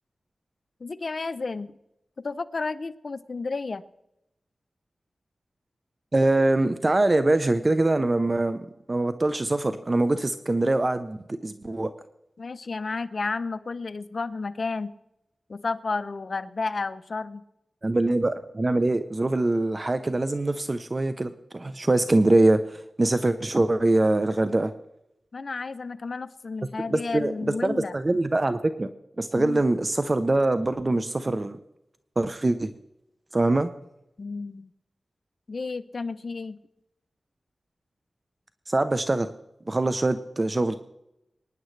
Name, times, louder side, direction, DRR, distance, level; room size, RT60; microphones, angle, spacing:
voice 1, 0.8-1.7 2.2-3.8 12.4-14.9 15.5-17.4 25.3-27.9 29.3-29.6 34.2-34.7 35.5-36.6, left 4 dB, 60° left, 12 dB, 0.7 m, -32 dB
voice 2, 6.1-8.6 8.9-11.2 11.4-11.9 17.8-24.7 26.9-27.3 27.6-28.9 29.2-31.6 32.2-32.7 33.3-33.7 38.7-39.3 39.7-40.8, right 2 dB, 35° right, 11 dB, 0.7 m, -23 dB
24.0 x 10.0 x 3.3 m, 0.86 s
cardioid pair, 55°, 0 cm